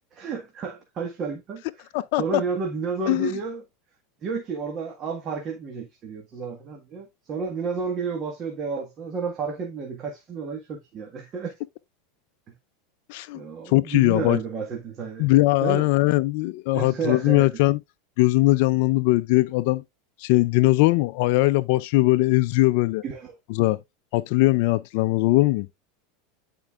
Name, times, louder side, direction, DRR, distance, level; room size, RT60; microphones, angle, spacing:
voice 1, 0.1-1.6 2.2-3.6 4.2-11.5 13.3-15.3 15.6-15.9 16.7-17.5 23.0-23.3, right 5 dB, 35° right, 1.5 m, -31 dB
voice 2, 13.1-13.4 13.7-14.4 15.2-17.8 18.2-19.8 20.2-23.0 23.5-23.8 24.1-25.7, left 19 dB, 65° left, 0.4 m, -20 dB
10.5 x 4.5 x 2.4 m
supercardioid pair, 125°, 0 cm